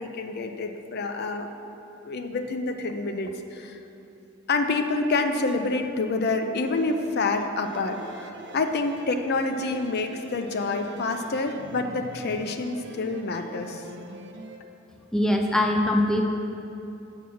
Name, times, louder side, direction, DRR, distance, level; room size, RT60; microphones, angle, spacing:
voice 1, 0.0-1.5 2.0-3.8 4.5-13.8, left 3 dB, 55° left, 6 dB, 0.5 m, -27 dB
sound 1, 6.6-14.6, right 3 dB, 60° right, 0.6 m, -44 dB
voice 2, 15.1-16.2, left 1 dB, 5° left, 2 dB, 0.4 m, -22 dB
7.4 x 6.0 x 5.5 m, 2.8 s
head